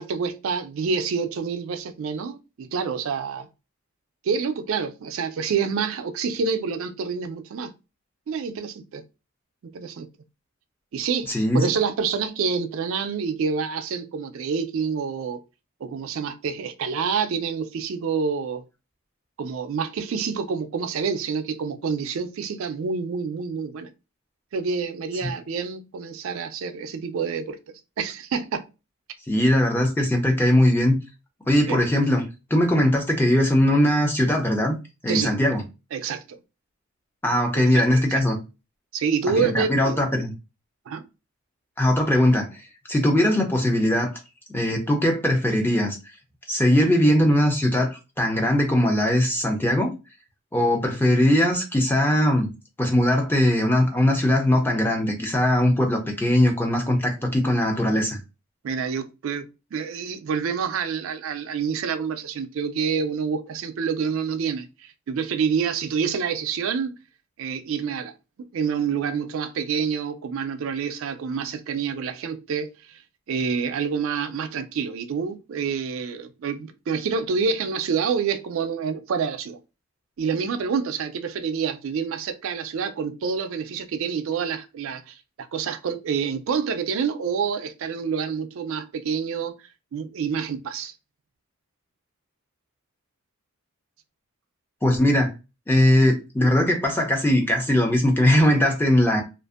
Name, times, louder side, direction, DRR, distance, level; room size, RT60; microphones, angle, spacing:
voice 1, 0.0-3.5 4.2-7.7 8.3-9.0 9.6-10.1 10.9-15.4 15.8-18.6 19.4-23.9 24.5-27.6 28.0-28.6 31.7-31.8 35.1-35.3 35.9-36.4 37.5-38.2 38.9-40.0 40.9-41.0 58.6-66.9 67.4-68.1 68.5-73.0 73.3-79.6 80.2-89.6 89.9-90.9, right 6 dB, 60° right, 0.3 m, -27 dB
voice 2, 11.3-11.6 29.3-31.0 31.5-32.2 32.5-34.8 35.0-35.6 37.2-38.4 39.3-40.3 41.8-44.1 44.5-46.0 46.5-49.9 50.5-52.5 52.8-58.2 94.8-95.3 95.7-99.2, left 1 dB, 10° left, 0.4 m, -20 dB
2.5 x 2.4 x 2.3 m
head